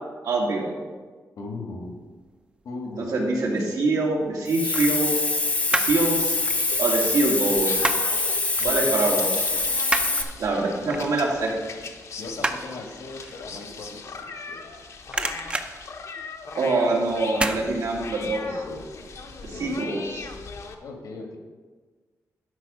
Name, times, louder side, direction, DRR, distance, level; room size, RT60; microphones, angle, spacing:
voice 1, 0.2-0.8 3.0-5.2 5.7-6.4 6.8-7.8 8.6-9.3 10.4-11.5 16.6-18.4 19.4-20.0, right 2 dB, 80° right, -2 dB, 2.2 m, -24 dB
voice 2, 1.4-2.0 2.6-3.2 8.6-9.4 10.6-11.0 12.2-14.6 17.3-17.6 18.4-19.0 19.5-20.0 20.8-21.4, left 3 dB, 80° left, 2 dB, 1.8 m, -39 dB
sound 1, 3.2-3.8 4.7-6.1 6.3-8.2 8.6-8.8 9.1-14.7 15.0-16.7 17.3-17.6 18.0-18.1, right 2 dB, 20° right, 0.5 m, -31 dB
Hiss, 4.5-10.2, left 3 dB, 25° left, 0.7 m, -24 dB
sound 2, 5.9-20.7, left 4 dB, 55° left, 0.8 m, -40 dB
12.0 x 4.9 x 5.5 m, 1.4 s
wide cardioid pair, 165°, 6 cm